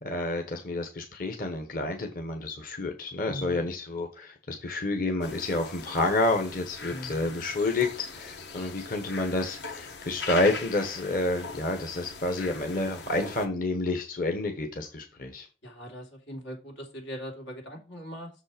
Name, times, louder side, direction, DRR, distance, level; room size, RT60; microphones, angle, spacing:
voice 1, 0.0-15.5, left 2 dB, 50° left, 1.1 m, -29 dB
voice 2, 3.2-3.6 6.9-7.3 15.6-18.3, equal, 90° left, 3.1 m, -40 dB
sound 1, 5.2-13.5, left 4 dB, 70° left, 1.3 m, -41 dB
6.8 x 5.4 x 5.0 m
head